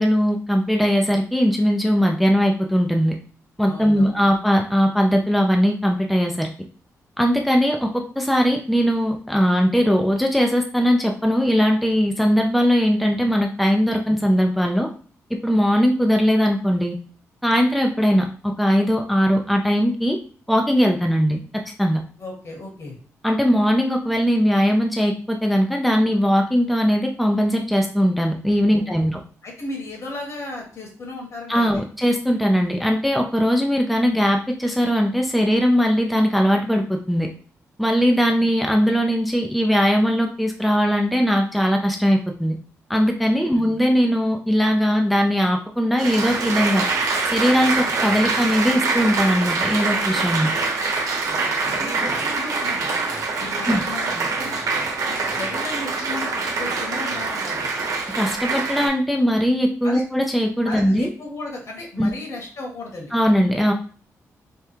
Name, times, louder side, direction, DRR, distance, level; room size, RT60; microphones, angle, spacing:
voice 1, 0.0-3.1 3.6-6.5 7.2-14.9 15.4-17.0 17.4-20.2 20.5-21.4 21.8-22.0 23.2-29.2 31.5-37.3 37.8-42.6 42.9-46.9 47.3-50.5 53.7-53.8 58.2-61.1 62.0-62.1 63.1-63.7, equal, ahead, 2 dB, 0.6 m, -20 dB
voice 2, 3.7-4.2 22.2-23.0 28.7-29.1 29.4-31.7 43.4-43.7 51.2-51.4 51.6-52.9 53.4-54.6 55.1-57.7 59.8-60.0 60.6-63.1, left 2 dB, 55° left, 0 dB, 1.7 m, -35 dB
Applause, 46.0-58.9, right 3 dB, 80° right, 1.0 m, -24 dB
3.5 x 2.3 x 4.5 m, 0.42 s
cardioid pair, 85°, 6 cm